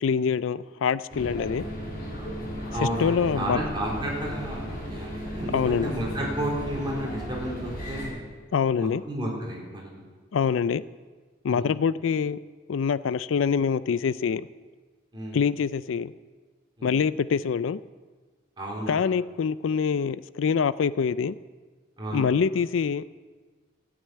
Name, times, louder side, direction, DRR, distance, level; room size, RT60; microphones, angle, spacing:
voice 1, 0.0-1.7 2.8-3.6 5.5-5.9 8.5-9.0 10.3-10.8 11.4-12.4 12.7-14.5 15.3-16.1 16.8-17.8 18.9-21.4 22.1-23.1, left 6 dB, 75° left, 17 dB, 0.4 m, -25 dB
sound 1, 1.1-8.1, equal, 50° left, 6.2 m, -35 dB
voice 2, 2.7-8.2 8.8-10.0 11.5-11.7 15.1-15.4 16.8-17.0 18.6-19.0 22.0-22.3, right 1 dB, 25° right, -3 dB, 4.1 m, -32 dB
14.5 x 9.0 x 8.5 m, 1.4 s
head